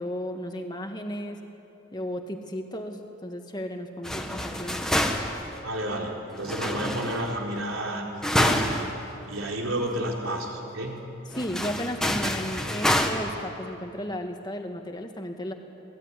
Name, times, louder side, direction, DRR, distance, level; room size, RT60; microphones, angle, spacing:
voice 1, 0.0-1.4 1.9-4.9 11.3-15.5, equal, 20° left, 4 dB, 2.0 m, -34 dB
Metal Rattle Ambient, 4.0-5.5 6.4-7.5 8.2-8.9 9.3-9.4 9.8-9.9 11.3-13.1, left 1 dB, 5° left, 1.6 m, -27 dB
voice 2, 5.6-8.9 9.3-11.0, right 1 dB, 85° right, 0 dB, 4.3 m, -31 dB
27.5 x 20.0 x 9.9 m, 2.8 s
head